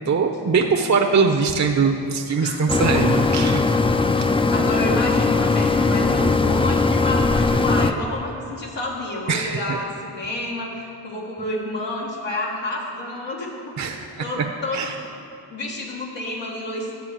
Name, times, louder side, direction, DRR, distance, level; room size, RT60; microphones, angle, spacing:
voice 1, 0.1-3.6 9.3-9.8 13.8-14.5 14.7-14.9, right 5 dB, 40° right, 3 dB, 0.7 m, -21 dB
voice 2, 2.4-3.0 4.5-13.5 13.8-13.9 14.2-14.9 15.5-17.0, left 1 dB, 85° left, -3 dB, 1.5 m, -29 dB
sound 1, 2.7-7.9, left 3 dB, 15° left, 0.3 m, -19 dB
9.4 x 4.4 x 7.5 m, 2.5 s
cardioid pair, 40°, 42 cm